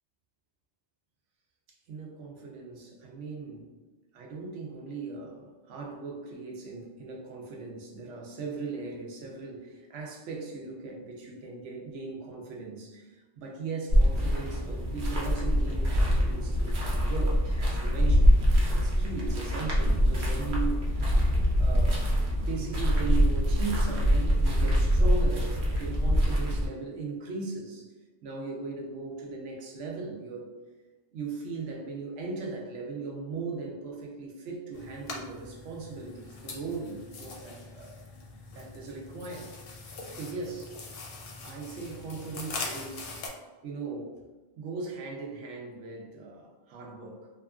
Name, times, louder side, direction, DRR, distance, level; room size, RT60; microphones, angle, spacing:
voice 1, 1.9-3.7 4.1-18.3 18.7-21.1 21.6-27.9 28.2-30.5 31.1-37.9 38.5-39.5 40.1-40.8 41.4-43.2 43.6-44.1 44.6-47.3, right 4 dB, 85° right, 0 dB, 0.9 m, -38 dB
sound 1, 13.9-26.7, equal, 55° right, 0.7 m, -24 dB
sound 2, 34.7-43.3, left 3 dB, 65° left, 0.7 m, -42 dB
2.7 x 2.4 x 2.3 m, 1.2 s
omnidirectional pair, 1.2 m